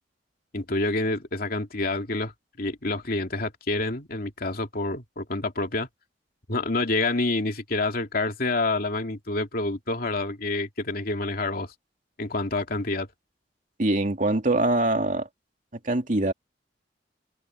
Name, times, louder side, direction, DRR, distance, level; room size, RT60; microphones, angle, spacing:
voice 1, 0.5-2.3 2.6-5.9 6.5-11.7 12.2-13.1, left 2 dB, 55° left, 2.6 m, -28 dB
voice 2, 13.8-15.3 15.8-16.3, right 2 dB, 45° right, 2.7 m, -23 dB
head